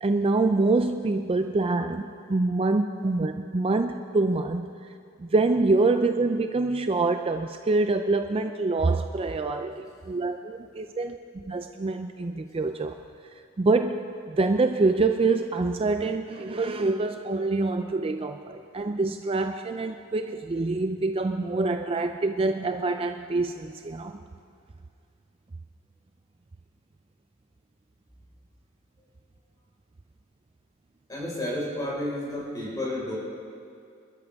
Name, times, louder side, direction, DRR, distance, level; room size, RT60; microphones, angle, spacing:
voice 1, 0.0-4.7 5.2-13.0 13.6-24.2, right 3 dB, 30° right, 7 dB, 0.4 m, -26 dB
voice 2, 31.1-33.2, left 1 dB, 20° left, -5 dB, 4.8 m, -31 dB
26.0 x 13.0 x 3.5 m, 2.4 s
head